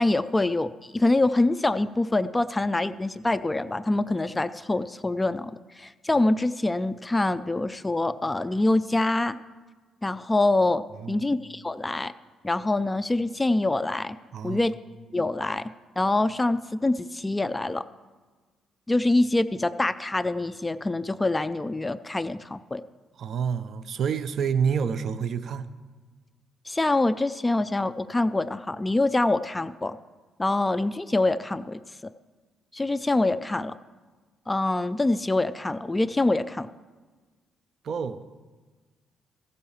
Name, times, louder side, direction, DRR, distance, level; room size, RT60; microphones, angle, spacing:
voice 1, 0.0-9.4 10.0-10.8 11.1-12.1 12.4-14.2 14.4-14.7 15.1-15.7 16.0-17.8 18.9-22.8 26.7-30.0 30.4-31.8 32.7-33.8 34.5-36.7, left 2 dB, 15° left, 14 dB, 0.3 m, -25 dB
voice 2, 14.3-14.7 23.2-25.7 37.8-38.2, right 7 dB, 60° right, 12 dB, 0.6 m, -28 dB
14.5 x 5.5 x 7.1 m, 1.4 s
cardioid pair, 90°, 0 cm